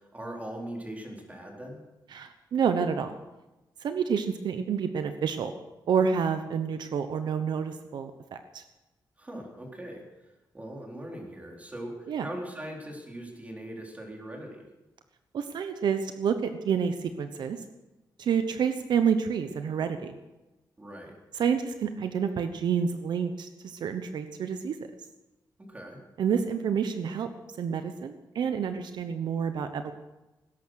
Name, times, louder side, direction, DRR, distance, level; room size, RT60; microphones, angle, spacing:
voice 1, 0.0-1.8 9.2-14.7 20.8-21.1 25.6-26.0, right 1 dB, 20° right, 0 dB, 4.1 m, -41 dB
voice 2, 2.1-3.1 3.8-5.5 5.9-8.6 12.1-12.3 15.3-17.6 18.2-20.2 21.4-24.8 26.2-27.3 27.6-29.9, right 7 dB, 75° right, 8 dB, 1.0 m, -28 dB
19.5 x 11.0 x 6.4 m, 1.1 s
cardioid pair, 120°, 8 cm